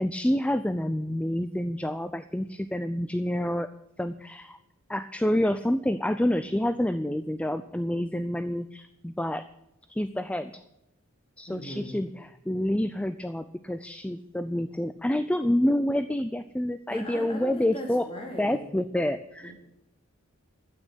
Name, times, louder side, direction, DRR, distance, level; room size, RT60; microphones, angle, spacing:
voice 1, 0.0-3.7 4.0-4.6 4.9-9.4 9.9-10.5 11.4-18.1 18.4-19.5, left 1 dB, 5° left, 11 dB, 0.4 m, -28 dB
voice 2, 11.5-12.0 16.9-18.6 19.4-19.5, left 1 dB, 25° left, 0 dB, 4.0 m, -39 dB
12.5 x 8.7 x 9.2 m, 0.87 s
head